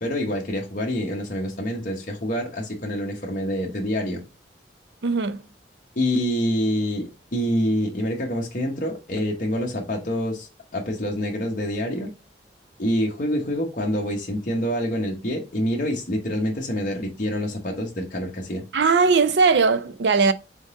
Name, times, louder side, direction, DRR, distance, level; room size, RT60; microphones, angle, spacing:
voice 1, 0.0-4.2 6.0-12.1 12.8-18.6, equal, 50° left, 1.0 m, -26 dB
voice 2, 5.0-5.4 18.7-20.3, right 4 dB, 75° right, 0.5 m, -19 dB
3.8 x 3.8 x 3.6 m
head